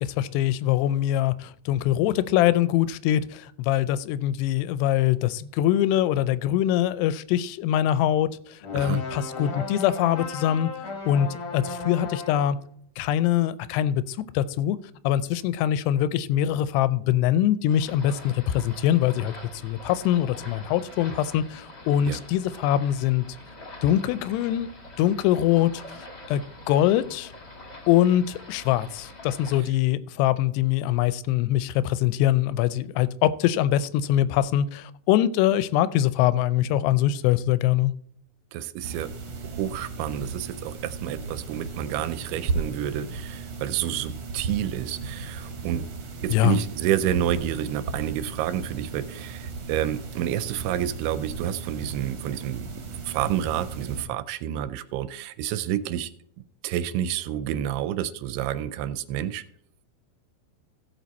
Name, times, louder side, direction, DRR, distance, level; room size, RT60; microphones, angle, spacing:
voice 1, 0.0-10.7 11.1-12.6 13.0-14.8 15.0-19.3 19.6-23.3 23.8-24.7 25.0-25.7 26.3-27.3 27.9-37.9 46.3-46.6, left 12 dB, 90° left, 2.6 m, -23 dB
sound 1, 8.6-12.6, left 3 dB, 55° left, 1.4 m, -35 dB
sound 2, 17.7-29.6, left 2 dB, 30° left, 1.3 m, -44 dB
voice 2, 38.5-39.1 39.4-45.8 46.2-52.7 53.1-56.1 56.6-59.4, right 11 dB, 85° right, 2.5 m, -29 dB
sound 3, 38.8-54.0, right 4 dB, 60° right, 1.8 m, -35 dB
15.5 x 6.4 x 4.1 m
omnidirectional pair, 4.7 m